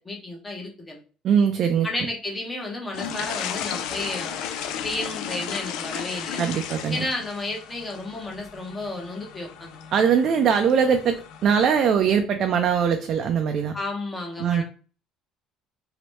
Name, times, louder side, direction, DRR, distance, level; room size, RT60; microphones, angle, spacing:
voice 1, 0.0-1.0 1.8-4.5 4.8-6.4 6.9-9.7 13.7-14.6, left 2 dB, 15° left, 1 dB, 1.0 m, -32 dB
voice 2, 1.2-1.9 6.4-7.0 9.9-13.7 14.4-14.6, right 7 dB, 40° right, 5 dB, 0.4 m, -21 dB
sound 1, 2.9-11.9, left 8 dB, 75° left, 0.5 m, -35 dB
3.1 x 3.0 x 3.1 m, 0.37 s
cardioid pair, 155°, 0 cm